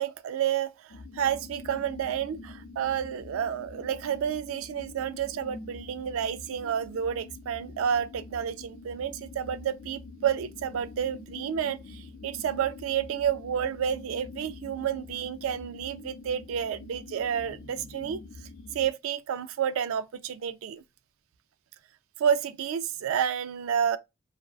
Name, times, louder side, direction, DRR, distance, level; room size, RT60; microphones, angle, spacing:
voice 1, 0.0-18.2 18.7-20.8 22.2-24.0, right 8 dB, 90° right, 0.3 m, -30 dB
sound 1, 0.9-18.9, left 3 dB, 60° left, 0.4 m, -46 dB
2.6 x 2.2 x 2.3 m
head